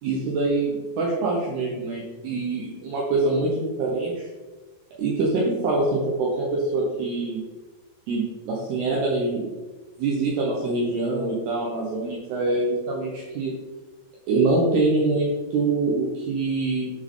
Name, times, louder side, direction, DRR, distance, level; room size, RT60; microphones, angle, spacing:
voice 1, 0.0-4.3 5.0-7.4 8.1-9.5 10.0-13.5 14.3-16.9, right 3 dB, 75° right, -3 dB, 2.6 m, -24 dB
9.9 x 4.4 x 3.7 m, 1.2 s
omnidirectional pair, 5.5 m